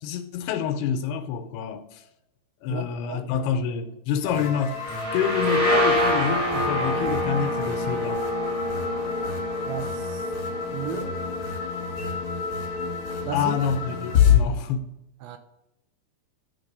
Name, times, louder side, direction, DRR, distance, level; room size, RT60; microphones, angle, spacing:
voice 1, 0.0-2.0 2.6-4.8 5.1-8.3 13.3-14.9, left 7 dB, 85° left, 2.7 m, -27 dB
voice 2, 2.7-3.2 9.7-10.2 10.7-11.1 13.3-13.5 15.2-15.4, right 10 dB, 80° right, 2.4 m, -34 dB
sound 1, 4.2-14.4, left 7 dB, 55° left, 1.7 m, -28 dB
sound 2, 4.8-12.3, left 1 dB, 45° right, 1.0 m, -27 dB
11.0 x 3.9 x 5.3 m
omnidirectional pair, 4.5 m